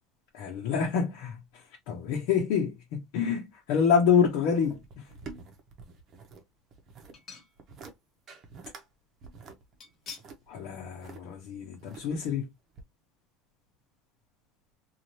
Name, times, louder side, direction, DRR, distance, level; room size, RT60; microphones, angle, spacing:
voice 1, 0.3-5.1 10.5-12.5, left 6 dB, 70° left, 0.8 m, -27 dB
sound 1, 4.6-6.4 6.7-7.2 7.6-7.9 8.3-8.9 9.2-11.2 11.7-12.3 12.8-12.9, right 4 dB, 40° right, 0.8 m, -47 dB
sound 2, 4.7-5.3 5.8-5.9 7.1-7.9 8.2-8.3 9.8-10.4 10.8-11.0 11.3-11.4, left 6 dB, 35° left, 1.4 m, -48 dB
2.7 x 2.4 x 3.0 m
supercardioid pair, 130°, 0 cm